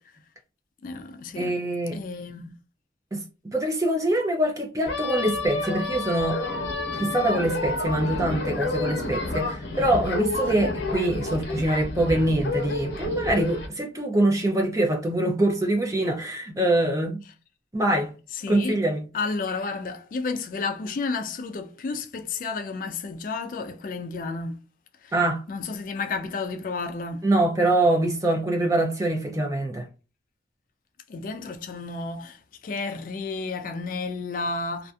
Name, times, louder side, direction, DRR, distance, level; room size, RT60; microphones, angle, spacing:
voice 1, 0.8-1.6 1.9-2.6 10.6-10.7 18.3-18.8 19.1-24.6 25.0-25.1 25.5-27.3 31.1-34.9, left 4 dB, 50° left, 0.3 m, -32 dB
voice 2, 1.4-2.0 3.1-6.4 6.9-17.2 17.7-18.1 18.5-19.1 25.1-25.4 27.2-29.9, right 1 dB, 20° right, 0.5 m, -24 dB
sound 1, 4.9-13.7, left 2 dB, 75° left, 0.7 m, -29 dB
2.5 x 2.5 x 2.2 m
head